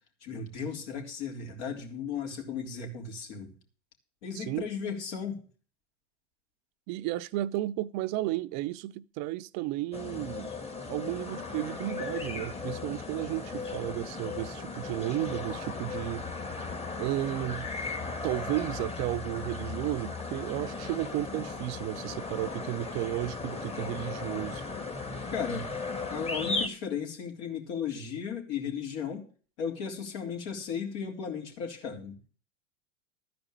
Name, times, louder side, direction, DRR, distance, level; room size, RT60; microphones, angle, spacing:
voice 1, 0.2-3.5 4.2-5.4 25.3-25.7 26.1-29.2 29.6-32.3, left 6 dB, 70° left, 3.6 m, -35 dB
voice 2, 6.9-10.5 10.9-16.2 17.0-17.7 18.2-24.6, right 17 dB, 50° right, 0.6 m, -33 dB
sound 1, 9.9-26.7, left 3 dB, 15° left, 1.5 m, -36 dB
13.5 x 5.1 x 9.0 m
hypercardioid pair, 110°, 36 cm